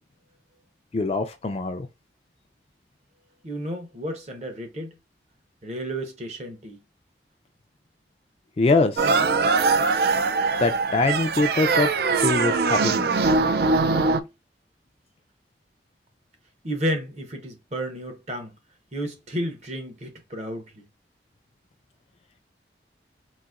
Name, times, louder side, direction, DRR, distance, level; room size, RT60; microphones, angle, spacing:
voice 1, 0.9-1.9 8.6-9.2 10.6-11.9 12.2-13.2, left 3 dB, 35° left, 0.3 m, -23 dB
voice 2, 3.4-5.0 5.6-6.8 14.1-14.3 16.6-18.5 18.9-20.8, equal, 40° right, 0.8 m, -32 dB
sound 1, 9.0-14.2, right 4 dB, 60° right, 0.3 m, -22 dB
4.0 x 2.5 x 2.4 m
head